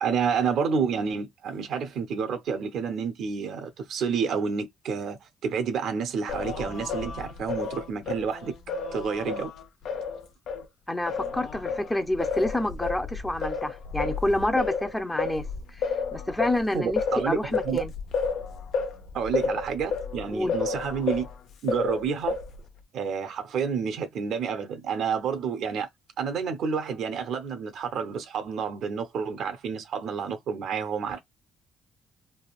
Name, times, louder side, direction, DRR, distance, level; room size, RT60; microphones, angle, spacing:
voice 1, 0.0-8.5 8.9-9.5 16.7-17.4 17.6-17.9 19.1-21.3 21.6-22.3 22.9-25.9 26.2-31.2, right 6 dB, 75° right, 0.6 m, -29 dB
Singing, 6.3-10.6 11.1-21.3 21.7-22.7, left 5 dB, 75° left, 0.5 m, -31 dB
voice 2, 10.9-15.4 15.8-15.9 16.1-17.9 20.3-20.5, left 1 dB, 10° left, 0.6 m, -28 dB
3.3 x 2.2 x 2.3 m
cardioid pair, 90°, 0 cm